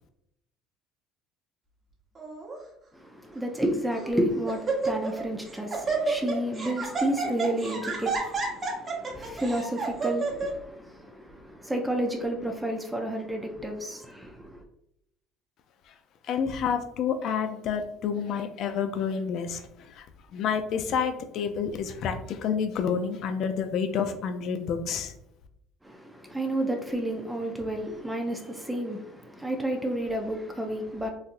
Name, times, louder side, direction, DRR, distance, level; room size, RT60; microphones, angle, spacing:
Laughter, 2.2-2.6 3.3-3.4 3.9-4.2 4.5-5.2 5.5-10.5, right 4 dB, 30° right, 1.1 m, -30 dB
voice 1, 2.9-14.6 25.8-31.1, right 1 dB, 5° right, 0.5 m, -31 dB
voice 2, 16.3-19.6 20.0-20.1 20.3-25.1, left 7 dB, 60° left, 0.5 m, -29 dB
4.0 x 2.6 x 2.5 m
supercardioid pair, 100°, 0 cm